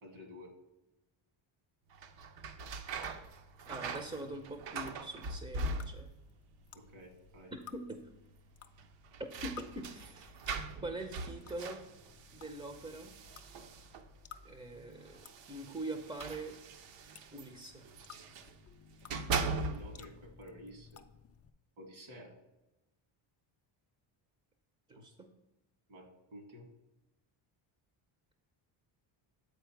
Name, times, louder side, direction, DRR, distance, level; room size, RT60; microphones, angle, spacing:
voice 1, 0.0-0.5 6.7-7.5 14.9-15.0 19.3-21.0 21.8-22.3 25.9-26.7, left 1 dB, 80° right, 2 dB, 2.3 m, -51 dB
sound 1, 1.9-6.3 6.6-7.3 7.6-7.7 8.7-14.2 15.0-18.5 18.9-20.1, right 3 dB, 60° right, 0.7 m, -41 dB
sound 2, 3.0-21.5, left 8 dB, 30° left, 0.4 m, -58 dB
voice 2, 3.7-6.1 7.5-8.0 9.4-10.4 10.8-11.8 12.3-13.1 14.4-16.5 17.3-17.8 24.9-25.1, right 2 dB, 15° right, 6 dB, 0.6 m, -43 dB
8.1 x 4.3 x 4.6 m, 0.97 s
cardioid pair, 125°, 50 cm